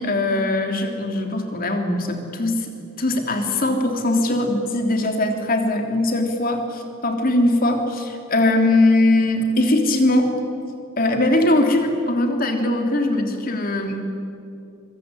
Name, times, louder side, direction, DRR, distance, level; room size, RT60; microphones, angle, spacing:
voice 1, 0.0-2.7 3.0-10.3 11.0-14.1, left 2 dB, 45° left, 4 dB, 3.2 m, -20 dB
25.0 x 23.0 x 9.8 m, 2.6 s
head